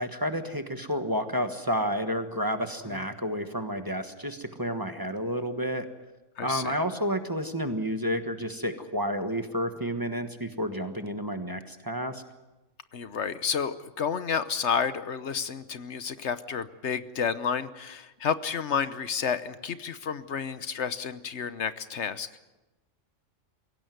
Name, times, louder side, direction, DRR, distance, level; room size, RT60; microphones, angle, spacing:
voice 1, 0.0-5.8 6.4-12.2, equal, 20° right, 7 dB, 1.4 m, -30 dB
voice 2, 6.4-6.8 12.9-22.4, left 6 dB, 70° left, 13 dB, 1.2 m, -31 dB
22.5 x 17.5 x 9.3 m, 1.1 s
omnidirectional pair, 1.2 m